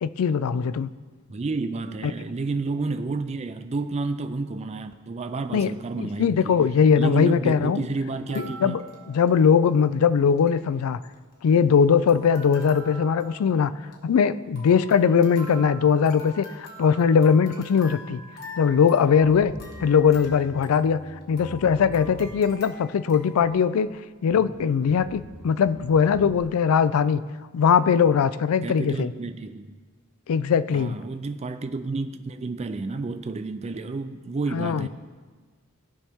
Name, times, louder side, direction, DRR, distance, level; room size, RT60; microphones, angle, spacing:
voice 1, 0.0-0.9 2.0-2.1 5.5-5.7 6.0-7.9 8.4-8.8 9.1-11.0 11.4-13.7 14.0-18.2 18.6-19.5 19.8-21.0 21.3-23.9 24.2-27.2 27.5-29.1 30.3-31.0 34.5-34.9, left 6 dB, 80° left, 0.4 m, -20 dB
voice 2, 1.3-6.6 7.0-8.8 28.6-29.7 30.7-34.9, right 3 dB, 30° right, 0.4 m, -30 dB
sound 1, 8.1-9.8 10.0-10.1 10.3-10.6 11.0-11.8 12.1-23.5, left 1 dB, 50° left, 1.6 m, -45 dB
Bass guitar, 19.2-22.8 23.4-24.0 24.3-26.4, equal, 5° right, 0.9 m, -44 dB
16.5 x 5.6 x 3.6 m
head